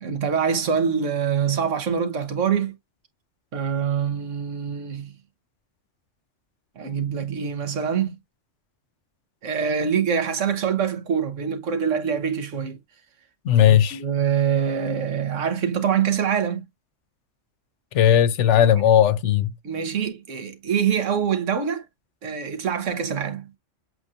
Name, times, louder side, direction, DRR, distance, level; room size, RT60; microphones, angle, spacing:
voice 1, 0.0-2.7 3.5-5.1 6.8-8.2 9.4-12.8 13.6-16.6 19.6-21.9 22.2-23.5, right 7 dB, 80° right, 1.4 m, -24 dB
voice 2, 13.4-14.0 17.9-19.5, left 10 dB, 75° left, 0.9 m, -17 dB
7.6 x 2.7 x 2.4 m
omnidirectional pair, 1.3 m